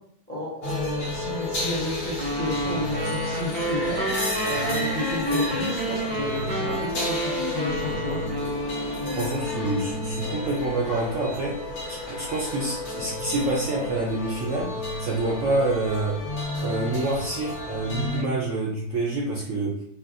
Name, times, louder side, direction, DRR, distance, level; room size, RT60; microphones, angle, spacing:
voice 1, 0.3-4.0 4.4-8.2, left 2 dB, 10° left, -6 dB, 0.7 m, -32 dB
sound 1, 0.6-18.2, left 2 dB, 65° left, 1.3 m, -32 dB
sound 2, 2.2-9.4, right 1 dB, 80° right, 0.4 m, -29 dB
voice 2, 9.1-14.7 15.0-16.1 16.6-19.7, right 2 dB, 65° right, -3 dB, 0.8 m, -27 dB
4.0 x 2.1 x 2.5 m, 0.65 s
omnidirectional pair, 1.8 m